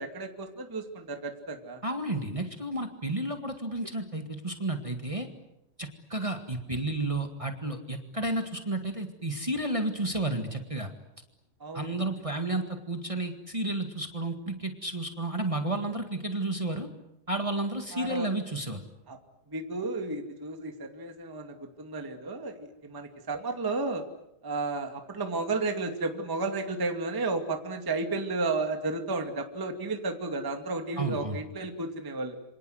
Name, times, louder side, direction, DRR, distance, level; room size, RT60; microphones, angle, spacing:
voice 1, 0.0-1.8 11.6-11.8 17.9-18.3 19.1-19.2 19.5-24.0 24.4-32.4, right 3 dB, 10° right, 4 dB, 1.5 m, -33 dB
voice 2, 1.8-5.3 5.8-10.9 11.7-16.9 17.3-18.8 31.0-31.4, right 2 dB, 45° right, 5 dB, 0.4 m, -32 dB
27.5 x 26.0 x 7.9 m, 0.85 s
omnidirectional pair, 4.2 m